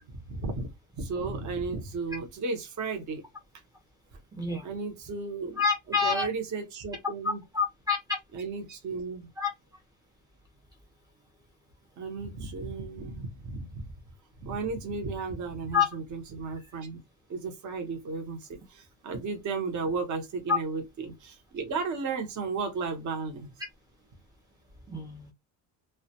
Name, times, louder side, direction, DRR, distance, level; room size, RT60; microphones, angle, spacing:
voice 1, 0.3-0.7 1.0-3.2 4.6-5.6 5.9-7.4 8.3-9.3 12.0-13.8 14.4-17.0 17.3-23.5, right 4 dB, 40° right, 0.7 m, -34 dB
voice 2, 4.3-4.7 5.6-6.3 7.5-8.2 9.4-9.5 15.7-15.9 20.5-20.6 24.9-25.3, left 5 dB, 10° right, 0.4 m, -27 dB
2.1 x 2.1 x 2.7 m
cardioid pair, 140°, 44 cm